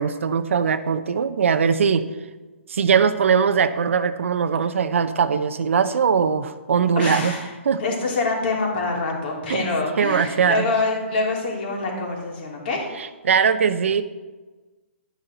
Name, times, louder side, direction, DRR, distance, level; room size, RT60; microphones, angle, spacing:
voice 1, 0.0-2.1 2.7-7.3 7.7-7.8 9.5-9.6 10.0-10.6 13.2-14.0, right 6 dB, 70° right, 11 dB, 0.7 m, -20 dB
voice 2, 7.0-7.5 7.8-12.9, left 3 dB, 50° left, -1 dB, 3.5 m, -25 dB
12.0 x 9.2 x 4.0 m, 1.2 s
hypercardioid pair, 140°, 7 cm